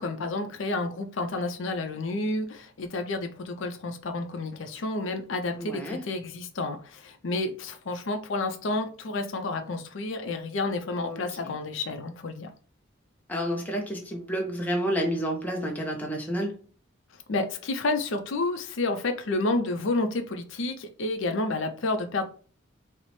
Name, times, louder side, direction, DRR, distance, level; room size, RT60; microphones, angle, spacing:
voice 1, 0.0-12.5 17.3-22.2, left 2 dB, 70° left, 0.5 m, -30 dB
voice 2, 5.6-6.0 11.0-11.6 13.3-16.6, equal, 10° left, 0.6 m, -30 dB
4.2 x 2.0 x 3.1 m
head